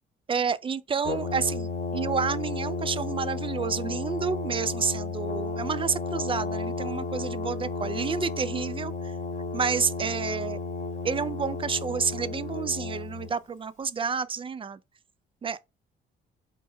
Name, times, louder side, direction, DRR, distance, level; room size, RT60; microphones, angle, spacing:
voice 1, 0.3-9.1 9.5-10.6 11.0-14.8 15.4-15.6, right 6 dB, 25° right, 0.4 m, -30 dB
Brass instrument, 1.0-13.3, left 3 dB, 40° left, 1.0 m, -33 dB
4.4 x 2.2 x 4.2 m
cardioid pair, 90°, 20 cm